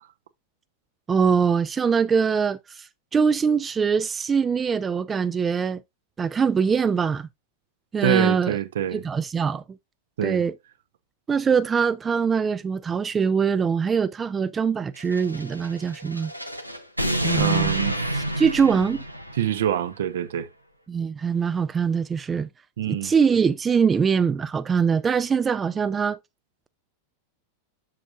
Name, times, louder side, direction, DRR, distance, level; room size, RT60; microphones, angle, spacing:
voice 1, 1.1-5.8 6.2-7.3 7.9-8.6 8.9-9.6 10.2-10.5 11.3-16.3 17.2-17.8 18.1-19.0 20.9-22.5 22.9-26.2, right 6 dB, 20° right, 0.4 m, -23 dB
voice 2, 8.0-9.0 10.2-10.4 17.3-18.1 19.3-20.5 22.8-23.1, right 10 dB, 60° right, 0.7 m, -25 dB
sound 1, 15.0-19.8, right 1 dB, 90° right, 0.8 m, -29 dB
7.5 x 7.3 x 2.4 m
figure-of-eight pair, 90°, 0 cm